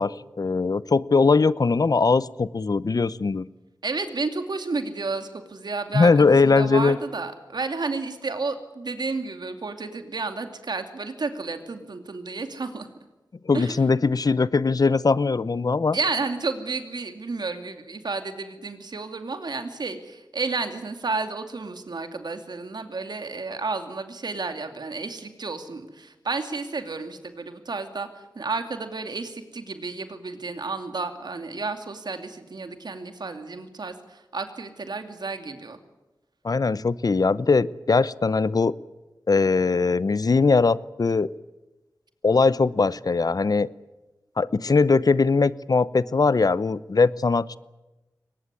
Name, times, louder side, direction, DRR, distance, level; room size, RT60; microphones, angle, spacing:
voice 1, 0.0-3.4 5.9-7.0 13.5-16.0 36.4-38.7 39.3-41.3 42.2-43.7 44.4-47.6, left 4 dB, 60° left, 18 dB, 0.8 m, -20 dB
voice 2, 3.8-12.9 13.5-13.8 15.9-35.8, right 3 dB, 75° right, 7 dB, 2.6 m, -31 dB
23.0 x 19.5 x 9.8 m, 1.1 s
cardioid pair, 50°, 7 cm